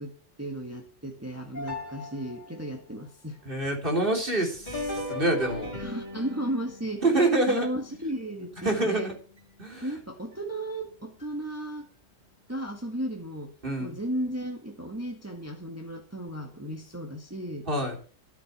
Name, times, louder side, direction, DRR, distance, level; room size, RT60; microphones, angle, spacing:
voice 1, 0.0-3.4 5.8-9.1 9.8-11.9 12.5-13.5 13.8-17.7, right 1 dB, 10° right, 2 dB, 1.8 m, -35 dB
sound 1, 1.5-2.7 4.5-8.9 9.4-9.5 10.3-10.4 11.2-11.3, left 2 dB, 35° left, 3.7 m, -39 dB
voice 2, 3.5-5.7 7.0-7.7 8.6-9.1 9.6-9.9 13.6-14.0 17.7-17.9, right 2 dB, 45° right, 1 dB, 3.9 m, -26 dB
13.5 x 8.0 x 6.8 m, 0.40 s
omnidirectional pair, 1.3 m